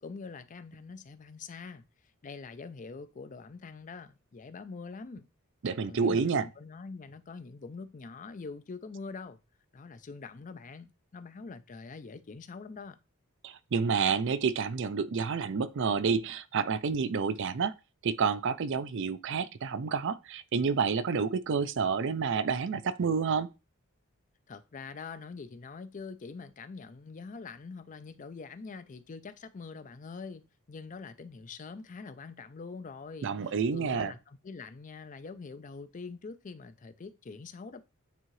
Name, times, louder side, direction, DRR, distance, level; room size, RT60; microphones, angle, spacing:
voice 1, 0.0-1.8 2.2-5.3 5.9-9.4 9.7-13.0 24.5-37.8, left 4 dB, 35° left, 0.4 m, -44 dB
voice 2, 5.6-6.5 13.4-17.7 18.0-23.5 33.2-34.1, right 5 dB, 60° right, 0.4 m, -29 dB
9.1 x 3.6 x 3.1 m
head